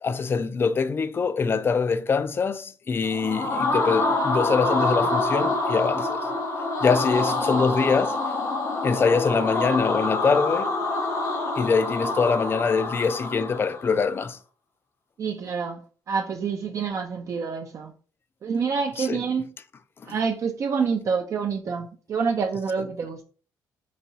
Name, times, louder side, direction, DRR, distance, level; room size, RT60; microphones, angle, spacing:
voice 1, 0.0-6.2 6.8-8.2 8.8-10.7 11.6-14.4 19.0-19.2 20.0-20.1, left 5 dB, 35° left, 0.3 m, -24 dB
sound 1, 3.0-13.9, left 2 dB, 60° left, 1.0 m, -26 dB
voice 2, 15.2-15.8 16.1-17.9 18.4-19.5 20.0-23.2, right 5 dB, 50° right, 0.4 m, -27 dB
4.0 x 2.3 x 2.7 m
cardioid pair, 80°, 7 cm